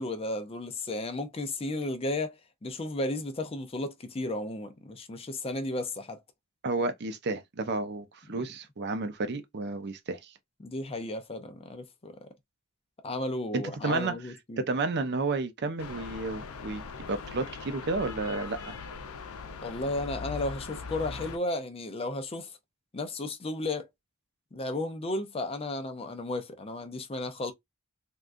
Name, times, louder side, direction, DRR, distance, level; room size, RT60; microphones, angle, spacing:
voice 1, 0.0-2.3 2.6-6.2 8.3-8.4 10.6-12.3 13.0-14.6 19.6-22.5 22.9-23.9 24.5-27.5, left 2 dB, 25° left, 0.5 m, -34 dB
voice 2, 6.6-10.3 13.5-14.1 14.6-16.8 17.1-18.7, right 3 dB, 50° right, 0.6 m, -31 dB
sound 1, 15.8-21.4, left 4 dB, 75° left, 0.6 m, -40 dB
3.6 x 2.3 x 2.5 m
head